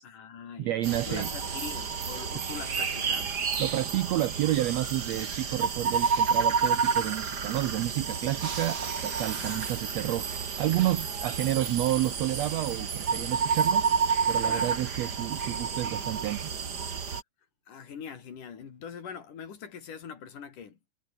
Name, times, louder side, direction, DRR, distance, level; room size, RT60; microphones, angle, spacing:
voice 1, 0.0-3.3 9.4-9.7 11.5-11.6 14.4-14.7 17.7-20.9, left 7 dB, 70° left, 4.7 m, -43 dB
voice 2, 0.6-1.3 3.6-10.3 10.6-13.9 14.3-16.5, right 14 dB, 75° right, 1.5 m, -30 dB
sound 1, 0.8-17.2, right 6 dB, 35° right, 2.1 m, -30 dB
omnidirectional pair, 3.8 m